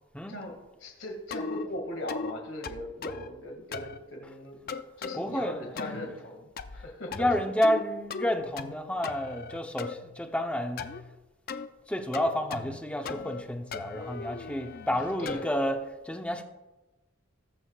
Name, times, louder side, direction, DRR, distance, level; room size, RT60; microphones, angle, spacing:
voice 1, 0.8-7.5 14.9-15.4, left 1 dB, 70° left, 2 dB, 2.1 m, -39 dB
sound 1, 1.3-1.7 2.1-2.3 2.6-3.3 3.7-4.0 4.7-5.2 5.8-6.1 6.6-6.9 7.1-7.8 8.1-8.8 9.0-9.9 10.8-11.0 11.5-11.7 12.1-12.8 13.1-13.4 13.7-15.5, left 5 dB, 50° left, 0.5 m, -37 dB
voice 2, 5.1-6.0 7.1-11.0 11.9-16.4, left 1 dB, 5° left, 4 dB, 0.8 m, -30 dB
20.0 x 7.3 x 2.4 m, 1.1 s
head